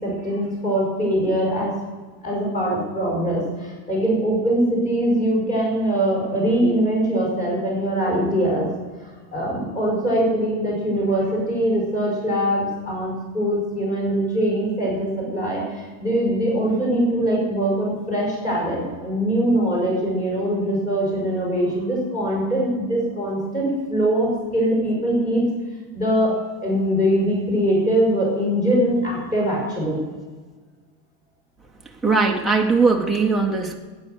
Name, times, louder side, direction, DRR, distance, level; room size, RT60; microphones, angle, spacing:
voice 1, 0.0-1.7 2.2-8.7 9.0-25.4 25.9-26.4 26.6-30.0, right 1 dB, 15° left, -3 dB, 5.0 m, -22 dB
voice 2, 32.0-33.8, right 4 dB, ahead, -2 dB, 0.5 m, -19 dB
12.0 x 9.5 x 7.8 m, 1.4 s
supercardioid pair, 170°, 50 cm